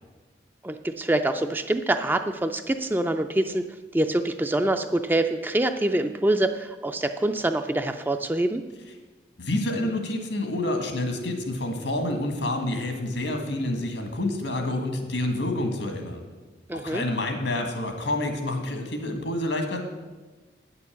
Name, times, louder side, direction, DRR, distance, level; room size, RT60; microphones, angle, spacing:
voice 1, 0.6-3.7 3.9-8.6 16.7-17.0, right 1 dB, 10° right, 7 dB, 0.3 m, -25 dB
voice 2, 9.4-16.2 16.7-19.8, left 1 dB, 80° left, 4 dB, 1.6 m, -28 dB
9.1 x 6.8 x 7.1 m, 1.3 s
head